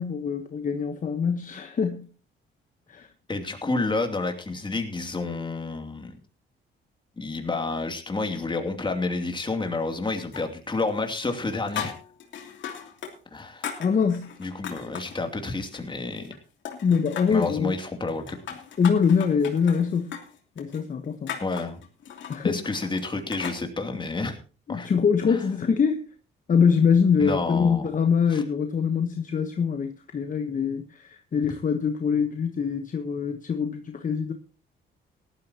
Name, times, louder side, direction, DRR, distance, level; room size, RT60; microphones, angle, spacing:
voice 1, 0.0-2.1 2.9-3.1 13.8-14.3 16.8-17.7 18.8-20.2 20.6-21.4 22.3-22.8 24.7-26.1 26.5-34.3, left 6 dB, 40° left, 1.2 m, -24 dB
voice 2, 3.3-6.2 7.2-11.9 13.3-13.8 14.4-16.3 17.3-18.4 21.4-21.8 22.4-24.4 24.7-24.9 25.3-25.4 27.2-27.9 28.3-28.4, left 3 dB, 25° left, 2.8 m, -29 dB
sound 1, 10.3-10.9 11.1-13.1 13.4-15.2 15.6-16.4 16.7-17.5 18.1-23.6, left 8 dB, 70° left, 2.9 m, -38 dB
18.0 x 12.5 x 2.9 m
cardioid pair, 90°, 20 cm